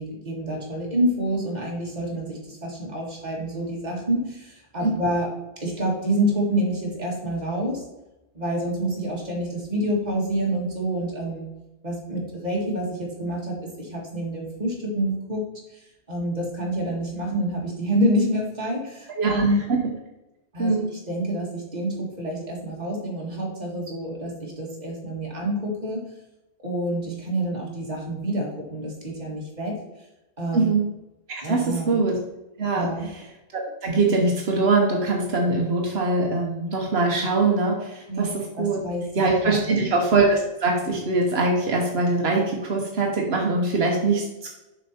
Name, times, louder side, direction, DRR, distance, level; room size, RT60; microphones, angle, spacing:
voice 1, 0.0-5.3 5.6-7.8 8.3-11.5 11.8-15.4 15.7-15.8 16.1-19.6 20.5-26.0 26.6-29.8 30.4-30.6 31.4-31.9 32.7-33.1 38.1-38.3 38.6-39.9, right 1 dB, 45° right, -2 dB, 2.1 m, -27 dB
voice 2, 19.2-19.8 20.6-20.9 30.5-30.9 31.3-32.2 32.6-33.3 33.5-38.8 39.2-44.5, right 3 dB, 80° right, 0 dB, 1.3 m, -23 dB
6.9 x 5.5 x 4.3 m, 0.97 s
omnidirectional pair, 1.0 m